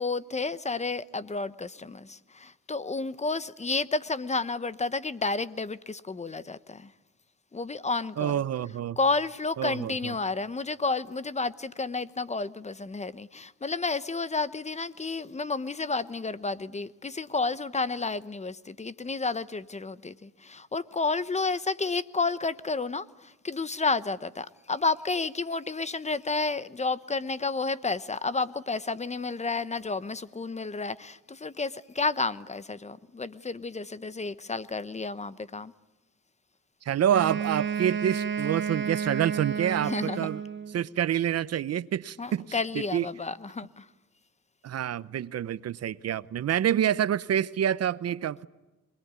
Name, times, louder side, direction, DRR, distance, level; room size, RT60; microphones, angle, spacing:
voice 1, 0.0-6.9 7.5-8.4 9.0-35.7 39.8-40.3 42.2-43.9, left 3 dB, 20° left, 1.0 m, -31 dB
voice 2, 8.2-9.0 9.6-10.1 36.9-40.4 40.7-42.6 42.9-43.1 44.6-48.5, right 10 dB, 55° right, 0.8 m, -27 dB
Wind instrument woodwind instrument, 37.1-40.8, right 7 dB, 40° right, 1.8 m, -31 dB
26.5 x 21.0 x 9.5 m
cardioid pair, 90°, 30 cm